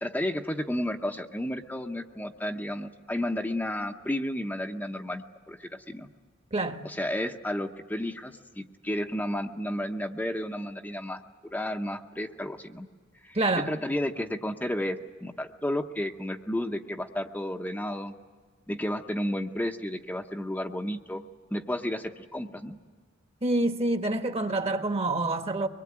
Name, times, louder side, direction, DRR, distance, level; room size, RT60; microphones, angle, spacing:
voice 1, 0.0-6.1 6.8-11.2 11.5-12.9 13.2-18.1 18.7-21.2 21.5-22.8, left 1 dB, 10° left, 0.8 m, -32 dB
voice 2, 6.5-6.8 13.3-13.7 23.4-25.7, right 2 dB, 30° right, 1.3 m, -27 dB
24.0 x 21.0 x 8.7 m
head